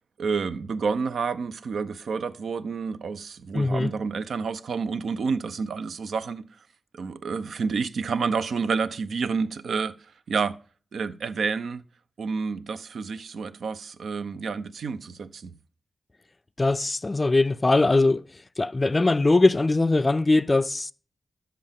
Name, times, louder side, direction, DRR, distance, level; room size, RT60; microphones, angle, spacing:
voice 1, 0.2-6.5 6.9-9.9 10.3-10.5 10.9-11.8 12.2-15.5, right 5 dB, 85° right, 0.6 m, -29 dB
voice 2, 3.5-3.9 16.6-18.2 18.6-20.9, left 2 dB, 30° left, 0.4 m, -21 dB
11.5 x 7.6 x 3.5 m
wide cardioid pair, 90°, 0 cm